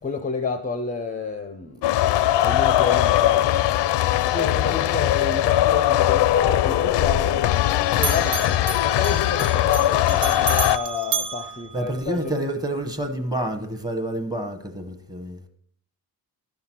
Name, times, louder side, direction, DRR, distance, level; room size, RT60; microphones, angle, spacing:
voice 1, 0.0-1.9 2.4-3.6 4.2-7.5 7.9-8.5 8.8-12.3, left 5 dB, 20° left, 0.5 m, -29 dB
sound 1, 1.8-10.8, left 13 dB, 80° left, 0.5 m, -20 dB
Bell, 6.3-7.7 7.9-12.4, right 6 dB, 50° right, 1.2 m, -32 dB
voice 2, 11.7-15.4, right 1 dB, 10° right, 0.9 m, -28 dB
13.0 x 5.8 x 5.9 m
wide cardioid pair, 160°, 41 cm